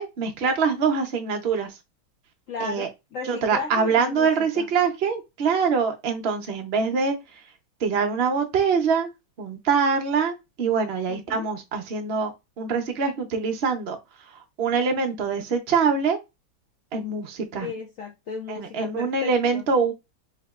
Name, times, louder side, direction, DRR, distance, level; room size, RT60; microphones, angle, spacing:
voice 1, 0.0-1.7 2.6-2.9 3.2-7.2 7.8-9.1 9.4-12.3 12.6-14.0 14.6-16.2 16.9-17.7 18.5-19.9, right 5 dB, 65° right, 0.6 m, -24 dB
voice 2, 2.5-4.3 4.6-4.7 11.1-11.5 17.6-19.6, left 5 dB, 85° left, 0.7 m, -35 dB
4.6 x 2.8 x 2.4 m
omnidirectional pair, 2.2 m